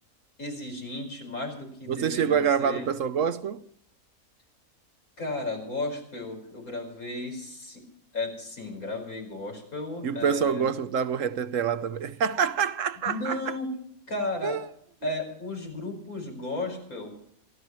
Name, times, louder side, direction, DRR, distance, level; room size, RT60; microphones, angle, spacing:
voice 1, 0.4-2.9 5.2-7.8 8.1-10.6 13.1-13.7 14.1-14.6 15.0-17.1, left 2 dB, 80° left, 5.6 m, -34 dB
voice 2, 1.9-3.6 10.0-13.4 14.4-14.6, right 7 dB, 65° right, 1.1 m, -26 dB
28.0 x 13.0 x 3.1 m
omnidirectional pair, 1.5 m